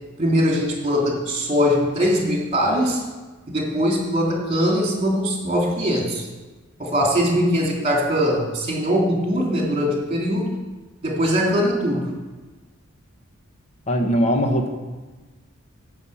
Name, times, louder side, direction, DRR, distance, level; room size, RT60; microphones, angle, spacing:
voice 1, 0.2-3.0 3.5-6.3 6.8-10.5 11.0-12.0, equal, 30° right, -1 dB, 3.0 m, -21 dB
voice 2, 13.9-14.7, equal, 30° left, 3 dB, 1.3 m, -20 dB
10.5 x 6.0 x 8.7 m, 1.2 s
head